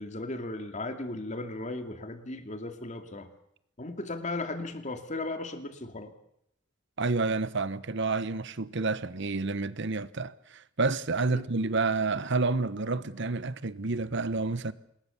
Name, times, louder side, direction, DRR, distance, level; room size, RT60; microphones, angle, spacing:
voice 1, 0.0-3.3 3.8-6.1 11.3-11.4, left 2 dB, 35° left, 2.5 m, -36 dB
voice 2, 7.0-14.7, right 3 dB, 60° right, 1.1 m, -29 dB
26.5 x 21.0 x 7.2 m
head